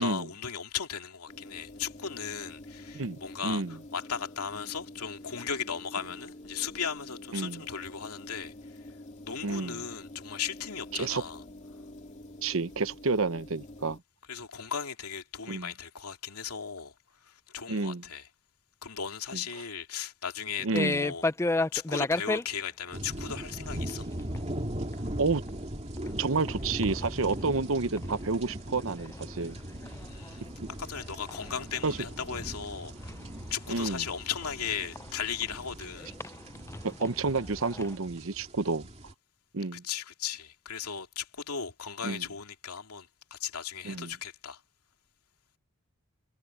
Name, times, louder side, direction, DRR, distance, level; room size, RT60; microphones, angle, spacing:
voice 1, 0.0-8.5 9.2-11.4 14.3-16.9 17.2-18.3 18.8-21.3 21.7-24.1 29.9-30.4 30.8-33.1 33.5-36.1 39.7-44.6, left 7 dB, 90° left, 2.6 m, -37 dB
sound 1, 1.3-14.0, left 1 dB, 35° left, 3.2 m, -47 dB
voice 2, 2.9-3.8 7.3-7.6 9.4-9.8 10.9-11.2 12.4-14.0 15.5-15.7 17.7-18.0 19.3-19.4 20.6-21.1 25.2-25.4 26.2-29.6 31.8-32.0 33.7-34.1 36.8-38.9 39.5-39.8 42.0-42.3 43.8-44.1, right 3 dB, 65° right, 0.9 m, -30 dB
sound 2, 20.7-22.4 23.6-23.9 24.2-24.4 24.9-25.0 25.5-25.6 25.8-26.6 26.8-28.2 28.4-31.8 32.2-35.5 36.0-38.0, left 2 dB, 10° left, 0.4 m, -33 dB
sound 3, 22.9-39.1, right 1 dB, 30° right, 2.6 m, -39 dB
head